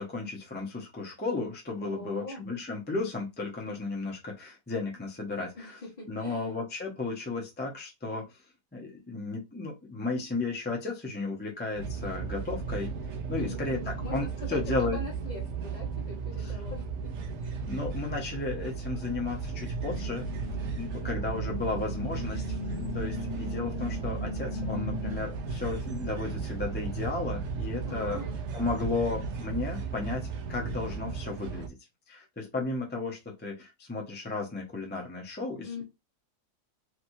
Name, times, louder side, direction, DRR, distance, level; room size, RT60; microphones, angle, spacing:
voice 1, 0.0-5.8 6.1-8.4 8.7-12.9 13.3-15.0 16.4-16.6 17.7-20.3 20.8-28.2 28.5-31.7 32.1-35.8, left 3 dB, 10° left, -1 dB, 0.4 m, -34 dB
voice 2, 1.8-2.4 5.5-6.5 13.4-17.1 17.4-17.7 20.9-21.1 27.8-28.4 35.6-35.8, left 2 dB, 30° left, -6 dB, 1.1 m, -42 dB
sound 1, 11.8-31.7, right 5 dB, 60° right, 0.8 m, -35 dB
sound 2, 19.8-25.2, left 4 dB, 50° left, 0.9 m, -39 dB
3.3 x 2.9 x 2.6 m, 0.23 s
omnidirectional pair, 1.7 m